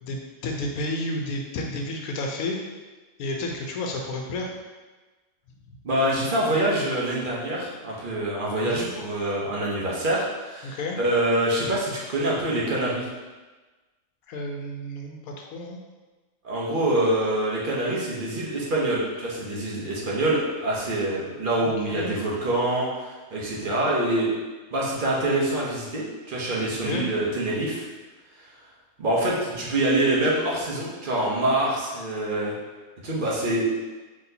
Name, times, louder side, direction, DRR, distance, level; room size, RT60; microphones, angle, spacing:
voice 1, 0.0-2.6 3.2-4.5 8.6-8.9 10.6-11.0 14.3-15.8 21.6-22.1 26.8-27.1, left 2 dB, 85° left, 1 dB, 1.1 m, -31 dB
voice 2, 5.8-13.1 16.4-24.3 24.7-27.8 29.0-32.5 33.0-33.7, right 1 dB, 45° right, -5 dB, 0.8 m, -25 dB
4.0 x 3.2 x 2.7 m, 1.2 s
omnidirectional pair, 1.5 m